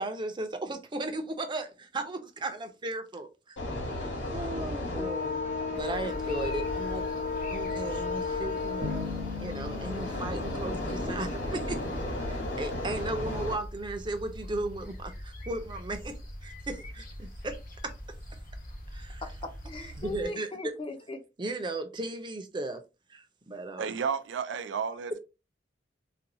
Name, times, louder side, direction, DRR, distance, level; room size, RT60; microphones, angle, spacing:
voice 1, 0.0-3.6 4.0-7.0 7.5-9.0 9.4-11.8 12.3-16.2 16.4-17.6 17.8-17.9 18.9-19.2 20.0-20.7 21.4-22.8 23.1-24.0, right 2 dB, 25° right, 0.5 m, -36 dB
sound 1, 3.6-13.5, left 3 dB, 85° left, 1.4 m, -33 dB
sound 2, 5.7-20.3, equal, 50° left, 1.0 m, -43 dB
Bass guitar, 8.8-11.9, left 4 dB, 60° right, 0.8 m, -39 dB
voice 2, 19.2-21.2, left 2 dB, 30° left, 0.6 m, -38 dB
voice 3, 23.8-25.2, right 6 dB, 80° right, 0.4 m, -32 dB
4.1 x 2.2 x 2.6 m
head